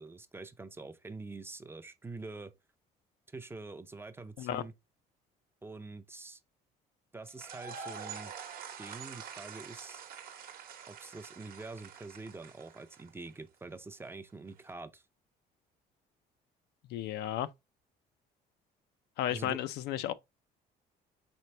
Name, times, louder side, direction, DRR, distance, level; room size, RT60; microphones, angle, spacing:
voice 1, 0.0-2.5 3.3-4.7 5.6-6.4 7.1-8.3 8.8-10.0 10.9-15.0 19.3-19.6, right 3 dB, 15° right, 0.4 m, -45 dB
sound 1, 7.3-13.3, right 6 dB, 60° right, 0.9 m, -46 dB
voice 2, 16.9-17.5 19.2-20.1, left 12 dB, 75° left, 0.4 m, -33 dB
4.5 x 3.3 x 3.1 m
cardioid pair, 110°, 17 cm